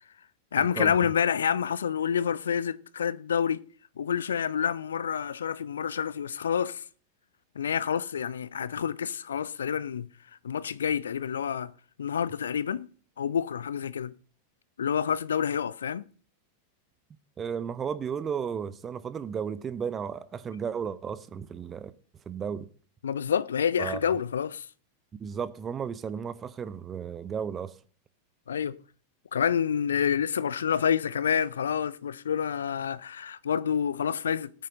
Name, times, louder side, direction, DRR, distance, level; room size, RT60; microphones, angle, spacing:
voice 1, 0.5-3.6 4.0-6.8 7.6-10.1 10.4-11.7 12.0-12.9 13.2-14.1 14.8-16.0 23.0-24.7 28.5-28.8 29.3-34.5, left 8 dB, 65° left, 0.5 m, -28 dB
voice 2, 17.4-21.9 22.3-22.7 23.8-24.0 25.2-27.8, right 7 dB, 20° right, 0.6 m, -34 dB
18.5 x 9.1 x 2.6 m
figure-of-eight pair, 90°, 0 cm